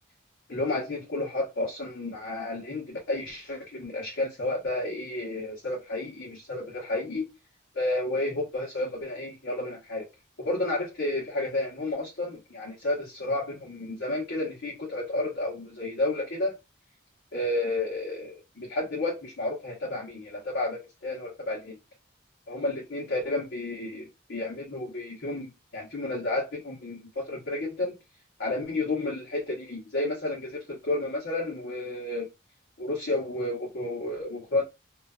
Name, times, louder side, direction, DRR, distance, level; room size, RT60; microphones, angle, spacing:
voice 1, 0.5-7.2 7.7-10.1 10.4-16.6 17.3-21.8 22.5-27.9 28.4-32.2 32.8-34.6, left 2 dB, 65° left, 0.9 m, -31 dB
2.5 x 2.3 x 2.2 m
head